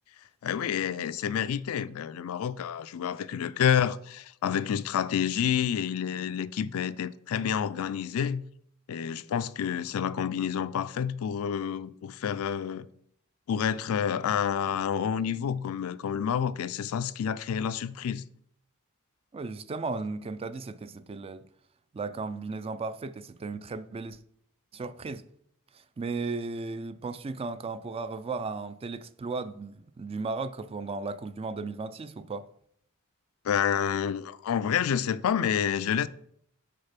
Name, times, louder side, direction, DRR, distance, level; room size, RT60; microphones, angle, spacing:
voice 1, 0.4-8.4 8.9-12.9 13.5-18.2 33.4-36.1, left 8 dB, 70° left, 0.3 m, -29 dB
voice 2, 19.3-21.4 21.9-24.2 24.7-25.2 25.7-32.5, right 3 dB, 25° right, 0.3 m, -35 dB
6.5 x 3.9 x 5.8 m
head